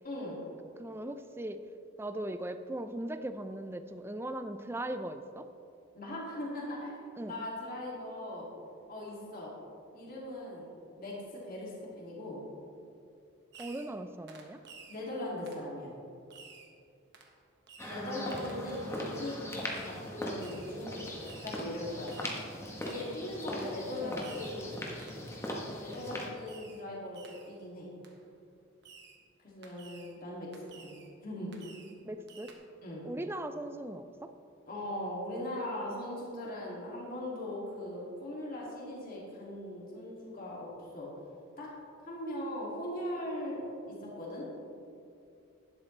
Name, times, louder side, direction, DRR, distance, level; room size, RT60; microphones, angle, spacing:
voice 1, 0.0-0.4 5.9-8.5 8.9-9.5 9.9-12.4 14.9-15.9 17.9-22.1 22.8-24.9 25.8-27.9 29.4-30.5 30.8-31.6 32.8-33.1 34.7-40.7 40.9-41.1 41.6-41.7 42.0-43.6 43.9-44.5, left 1 dB, 40° left, -5 dB, 2.5 m, -39 dB
voice 2, 0.8-1.6 2.0-5.5 7.2-7.5 13.6-14.6 17.8-19.0 23.5-23.7 24.0-24.2 32.0-32.5 33.0-34.3, right 1 dB, 10° right, 9 dB, 0.4 m, -39 dB
Fireworks, 13.5-14.0 14.3-15.0 15.5-15.7 16.3-16.7 17.1-17.3 17.7-18.0 18.5-18.6 19.7-20.0 20.4-20.8 21.2-21.6 22.1-22.5 22.8-23.2 23.6-23.8 24.2-24.6 25.0-25.3 26.5-26.9 27.1-27.5 28.0-28.2 28.8-29.2 29.6-30.1 30.5-31.1 31.5-32.0 32.3-32.5, right 5 dB, 55° right, 1.2 m, -53 dB
sound 1, 17.8-26.3, left 1 dB, 15° left, 1.2 m, -40 dB
11.5 x 11.0 x 3.3 m, 2.6 s
head